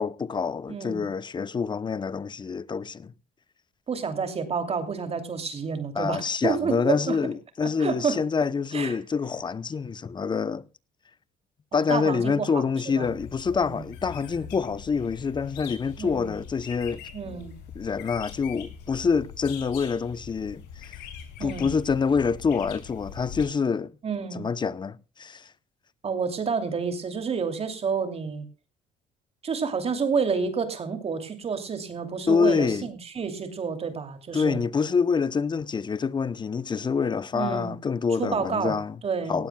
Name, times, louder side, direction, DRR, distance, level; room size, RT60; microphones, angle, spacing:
voice 1, 0.0-3.1 5.9-10.6 11.7-17.0 17.7-20.9 21.4-24.0 24.3-25.5 32.3-32.9 34.3-39.0 39.3-39.5, left 5 dB, 25° left, 0.7 m, -26 dB
voice 2, 0.7-1.0 3.9-7.2 7.6-8.2 8.7-9.0 11.7-12.7 13.0-13.1 13.5-13.8 16.0-16.3 17.1-17.5 21.4-21.7 24.0-24.5 26.0-28.4 29.4-34.6 37.3-37.7 38.2-38.8 39.0-39.5, right 5 dB, 35° right, 2.8 m, -29 dB
sound 1, 13.0-23.5, left 7 dB, 90° left, 5.6 m, -42 dB
18.5 x 16.5 x 2.3 m
cardioid pair, 110°, 17 cm